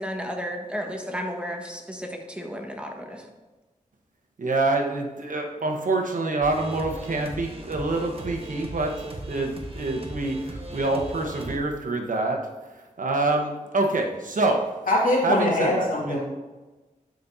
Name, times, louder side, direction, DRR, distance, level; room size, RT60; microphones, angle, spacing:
voice 1, 0.0-3.2, equal, 5° right, 2 dB, 1.5 m, -33 dB
voice 2, 4.4-12.4 13.0-14.6 15.2-16.2, right 2 dB, 65° right, 2 dB, 1.2 m, -26 dB
sound 1, 6.4-11.6, right 1 dB, 40° right, 1.4 m, -37 dB
voice 3, 14.9-16.2, left 1 dB, 70° left, -4 dB, 2.5 m, -22 dB
12.0 x 5.2 x 2.8 m, 1.2 s
cardioid pair, 40°, 15 cm